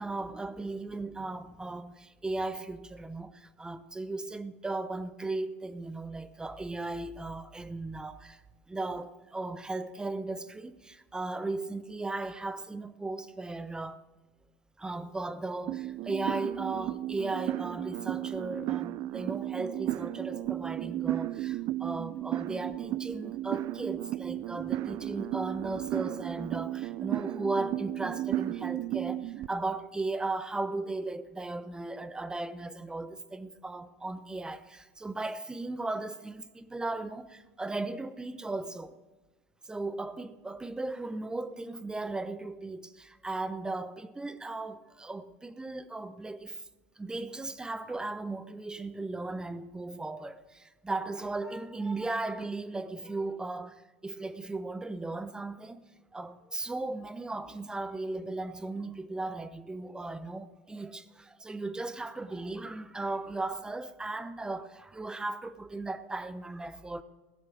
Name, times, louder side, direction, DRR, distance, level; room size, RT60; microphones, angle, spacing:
voice 1, 0.0-8.4 8.7-14.0 14.8-38.9 39.6-46.6 47.0-67.0, right 2 dB, 10° right, 0.7 m, -36 dB
sound 1, 15.7-29.5, right 15 dB, 50° right, 0.3 m, -34 dB
16.5 x 7.2 x 6.3 m
hypercardioid pair, 90°, 7 cm